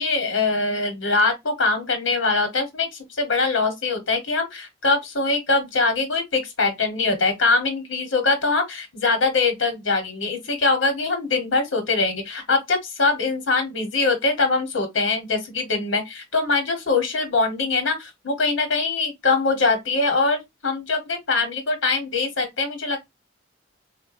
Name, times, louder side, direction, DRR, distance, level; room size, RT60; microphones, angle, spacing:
voice 1, 0.0-23.0, left 3 dB, 70° left, 1.0 m, -23 dB
3.5 x 2.1 x 2.4 m
head